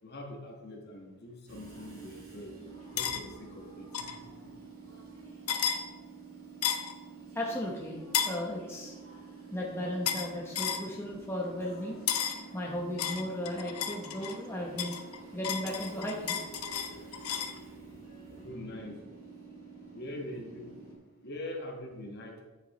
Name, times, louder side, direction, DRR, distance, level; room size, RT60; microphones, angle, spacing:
voice 1, 0.0-2.5 2.9-4.5 18.4-19.1 19.9-20.9 21.2-22.4, left 1 dB, 50° left, 1 dB, 1.4 m, -43 dB
Train / Subway metro underground, 1.5-20.9, right 4 dB, 70° right, 2.3 m, -49 dB
sound 1, 3.0-3.2 3.9-4.2 5.5-5.8 6.6-6.9 8.1-8.4 10.1-10.3 10.6-10.9 12.1-12.4 13.0-14.4 14.8-17.6, left 8 dB, 85° left, 0.7 m, -32 dB
voice 2, 7.3-8.0 8.2-8.9 9.5-12.0 12.5-15.0 15.3-16.4, left 1 dB, 10° left, -2 dB, 0.9 m, -35 dB
9.0 x 7.3 x 3.1 m, 1.2 s
head